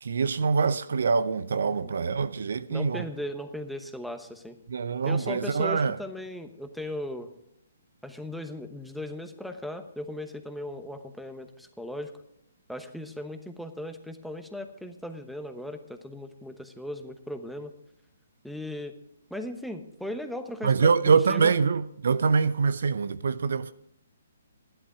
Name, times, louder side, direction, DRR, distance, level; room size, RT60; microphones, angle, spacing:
voice 1, 0.0-3.1 4.7-6.0 20.6-23.7, right 5 dB, 70° right, 0.5 m, -24 dB
voice 2, 2.7-4.6 5.1-7.3 8.0-12.1 12.7-17.7 18.4-18.9 19.3-21.5, left 1 dB, ahead, 1.0 m, -37 dB
12.5 x 11.5 x 4.8 m
hypercardioid pair, 135°, 0 cm